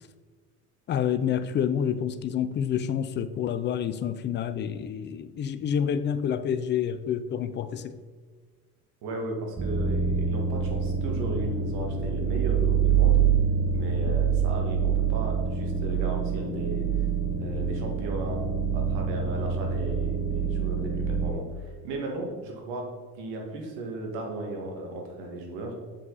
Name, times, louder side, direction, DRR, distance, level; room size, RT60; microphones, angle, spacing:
voice 1, 0.9-8.0 14.1-14.2, left 8 dB, 25° left, 13 dB, 0.4 m, -28 dB
voice 2, 9.0-13.2 13.7-17.1 17.4-18.4 18.7-25.8, right 2 dB, 60° right, 1 dB, 1.9 m, -36 dB
sound 1, 9.6-21.3, right 6 dB, 25° right, 1.2 m, -26 dB
7.2 x 5.3 x 4.0 m, 1.5 s
hypercardioid pair, 70°, 46 cm